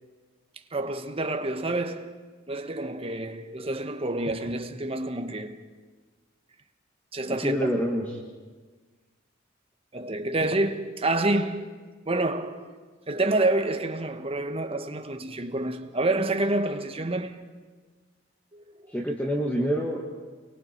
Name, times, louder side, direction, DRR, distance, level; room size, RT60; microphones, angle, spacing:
voice 1, 0.7-2.2 2.5-5.6 7.1-7.5 9.9-11.8 12.0-12.7 13.1-17.4 18.5-18.6, right 2 dB, 30° right, 1.2 m, -28 dB
voice 2, 7.3-8.0 18.9-20.1, equal, 10° left, 1.9 m, -27 dB
29.5 x 23.5 x 4.5 m
head